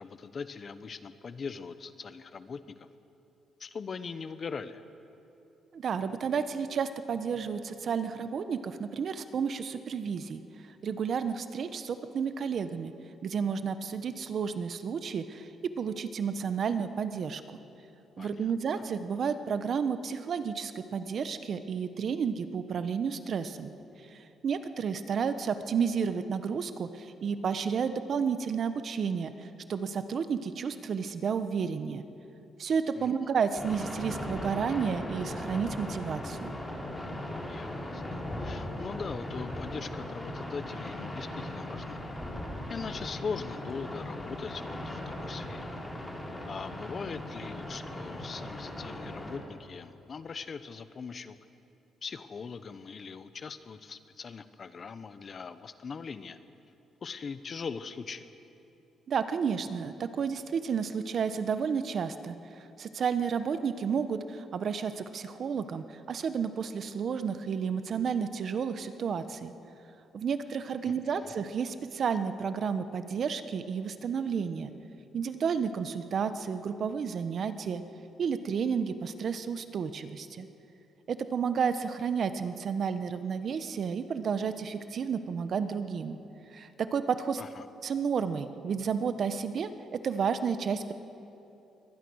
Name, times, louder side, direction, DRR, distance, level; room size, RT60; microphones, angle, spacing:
voice 1, 0.0-2.9 3.6-4.8 18.2-18.5 33.0-33.1 37.5-42.0 42.7-45.6 46.5-51.4 52.0-56.4 57.0-58.3 70.8-71.3 87.4-87.6, left 5 dB, 45° left, 12 dB, 1.0 m, -41 dB
voice 2, 5.7-10.4 10.8-12.9 13.2-15.5 15.8-17.4 18.2-23.7 24.1-32.0 32.6-36.5 59.1-69.5 70.1-74.7 75.1-77.8 78.2-80.5 81.1-86.2 86.5-87.4 87.8-90.9, right 6 dB, 55° right, 10 dB, 1.1 m, -31 dB
sound 1, 33.5-49.4, left 1 dB, 15° left, 3.8 m, -38 dB
23.0 x 18.5 x 6.4 m, 2.9 s
cardioid pair, 90°, 0 cm